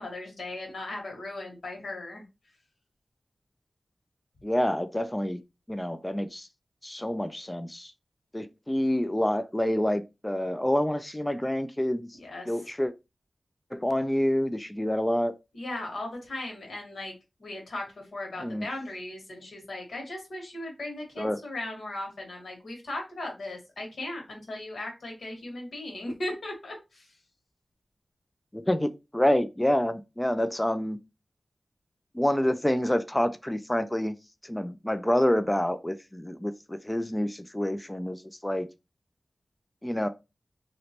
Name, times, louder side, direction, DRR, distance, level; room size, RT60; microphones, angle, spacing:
voice 1, 0.0-2.2 12.2-12.5 15.5-17.1 17.4-27.0, left 1 dB, 85° left, 1.6 m, -37 dB
voice 2, 4.4-5.4 5.7-6.5 6.8-7.9 8.3-12.1 12.5-12.9 13.7-15.3 18.4-18.7 21.2-21.4 28.5-31.0 32.1-34.1 34.4-38.7 39.8-40.1, left 1 dB, 15° left, 0.3 m, -27 dB
3.1 x 2.9 x 2.9 m
wide cardioid pair, 80°, 0 cm